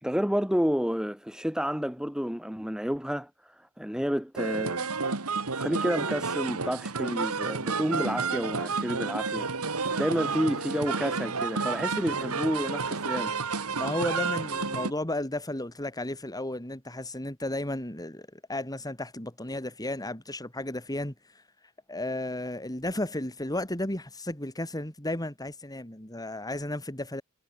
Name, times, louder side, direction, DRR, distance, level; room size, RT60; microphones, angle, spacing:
voice 1, 0.0-4.9 5.2-13.4, equal, 5° right, 1.9 m, -30 dB
sound 1, 4.4-14.9, right 4 dB, 85° right, 2.1 m, -30 dB
voice 2, 13.8-21.1 21.9-27.2, left 1 dB, 15° left, 4.5 m, -33 dB
head